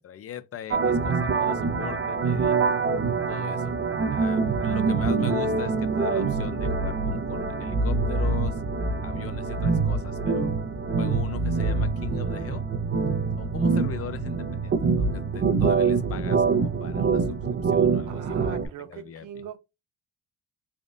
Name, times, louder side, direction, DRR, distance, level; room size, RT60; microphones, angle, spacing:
voice 1, 0.0-2.6 3.3-3.8 4.1-8.5 9.0-10.5 11.0-12.7 13.4-18.6 18.9-19.2, left 9 dB, 50° left, 0.6 m, -40 dB
sound 1, 0.7-18.7, right 4 dB, 45° right, 0.8 m, -25 dB
voice 2, 18.1-19.6, right 9 dB, 80° right, 1.0 m, -41 dB
3.7 x 3.5 x 2.5 m
cardioid pair, 90°, 30 cm